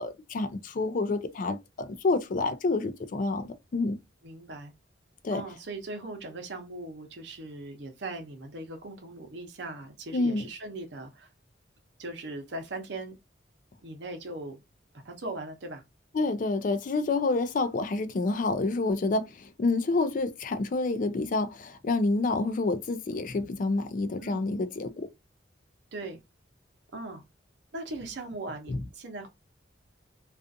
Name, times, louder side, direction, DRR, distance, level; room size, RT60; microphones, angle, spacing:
voice 1, 0.0-4.0 5.2-5.4 10.1-10.5 16.1-25.1 28.7-28.8, left 3 dB, 45° left, 0.4 m, -28 dB
voice 2, 4.2-4.7 5.3-11.3 12.0-13.2 13.8-14.6 14.9-15.8 24.2-24.4 25.9-26.2 26.9-27.2 27.7-29.3, right 2 dB, 65° right, 0.7 m, -39 dB
2.4 x 2.4 x 2.5 m
head